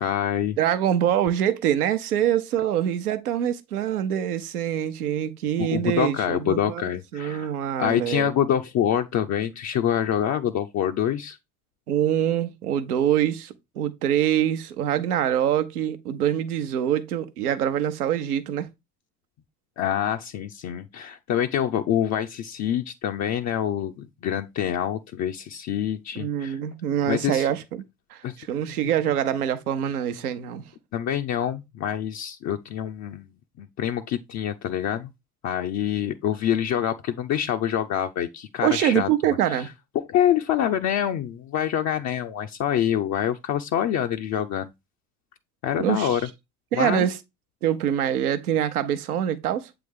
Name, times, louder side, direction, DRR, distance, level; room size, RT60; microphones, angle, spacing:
voice 1, 0.0-0.6 5.6-7.5 7.8-11.4 19.8-26.6 27.1-27.5 28.2-28.4 28.6-28.7 30.9-33.3 33.6-35.1 35.4-39.1 39.5-39.6 39.9-44.7 45.6-46.2 46.7-47.1, left 10 dB, 40° left, 0.5 m, -26 dB
voice 2, 0.6-6.8 7.1-8.3 11.9-18.7 26.1-27.8 28.1-30.6 38.6-39.7 45.8-46.2 46.7-47.2 47.6-49.7, right 10 dB, 80° right, 0.8 m, -25 dB
7.6 x 3.4 x 3.6 m
hypercardioid pair, 60°, 44 cm